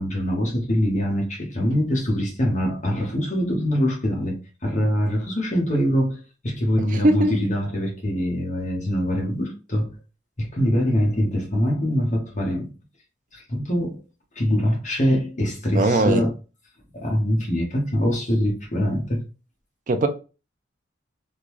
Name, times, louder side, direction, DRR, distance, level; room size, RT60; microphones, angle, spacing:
voice 1, 0.0-4.4 4.6-9.9 10.4-12.7 13.3-14.0 14.3-16.3 16.9-19.2, equal, 40° left, 1.1 m, -23 dB
voice 2, 15.7-16.2 19.9-20.1, right 1 dB, 45° right, 0.4 m, -19 dB
3.7 x 2.3 x 3.1 m
head